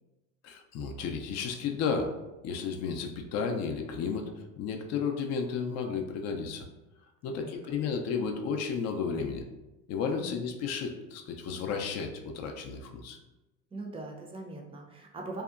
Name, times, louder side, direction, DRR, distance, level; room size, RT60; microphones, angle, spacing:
voice 1, 0.4-2.2 2.4-4.3 4.6-6.7 7.2-9.4 9.9-13.2, left 5 dB, 45° left, 4 dB, 0.4 m, -33 dB
voice 2, 13.7-15.4, right 2 dB, 15° right, 1 dB, 0.4 m, -41 dB
2.7 x 2.1 x 2.4 m, 1.0 s
supercardioid pair, 85°, 39 cm